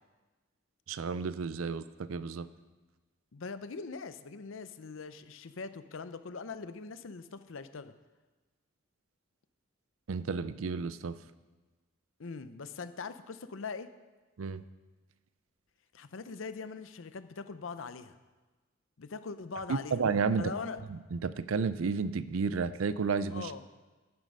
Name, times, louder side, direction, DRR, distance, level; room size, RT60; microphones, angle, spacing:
voice 1, 0.9-2.5 10.1-11.2 14.4-14.6 19.7-20.4 20.9-23.6, right 5 dB, 85° right, 15 dB, 0.5 m, -32 dB
voice 2, 3.3-7.9 12.2-13.9 15.9-18.2 19.0-20.0 20.4-20.8 23.3-23.6, left 4 dB, 75° left, 12 dB, 0.6 m, -41 dB
10.5 x 9.4 x 5.4 m, 1.3 s
head